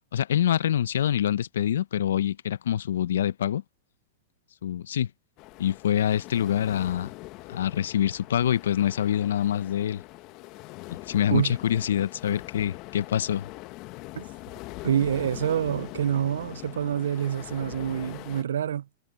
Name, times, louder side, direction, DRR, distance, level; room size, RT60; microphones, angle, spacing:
voice 1, 0.1-3.6 4.6-5.1 5.6-7.1 7.5-10.0 10.8-13.5, left 10 dB, 75° left, 0.9 m, -25 dB
sound 1, 5.4-18.4, left 21 dB, 45° left, 1.3 m, -42 dB
voice 2, 14.8-18.9, right 9 dB, 75° right, 0.6 m, -27 dB
hypercardioid pair, 105°, 0 cm